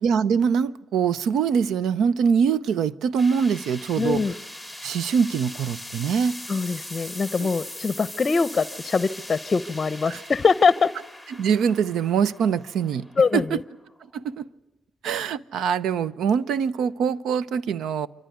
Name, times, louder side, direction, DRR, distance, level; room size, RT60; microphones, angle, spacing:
voice 1, 0.0-4.2 4.8-6.4 7.4-7.5 10.1-10.2 11.3-13.1 13.3-13.6 14.1-14.5 15.0-18.1, right 7 dB, 75° right, 0.7 m, -23 dB
sound 1, 3.2-14.3, left 1 dB, 5° right, 2.3 m, -41 dB
voice 2, 4.0-4.3 6.5-10.9 13.2-13.6, left 5 dB, 35° left, 0.7 m, -23 dB
25.5 x 14.0 x 9.4 m
cardioid pair, 90°, 0 cm